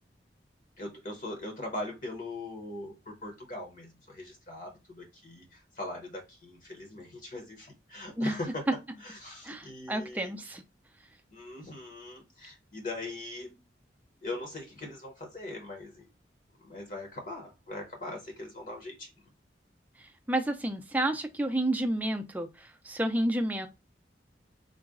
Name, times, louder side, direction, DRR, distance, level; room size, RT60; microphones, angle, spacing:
voice 1, 0.8-8.7 9.0-10.6 11.3-13.6 14.2-16.1 16.6-19.1, left 2 dB, 45° left, 1.0 m, -41 dB
voice 2, 9.4-10.6 20.0-23.7, right 1 dB, 10° right, 0.4 m, -30 dB
3.9 x 2.2 x 3.6 m
head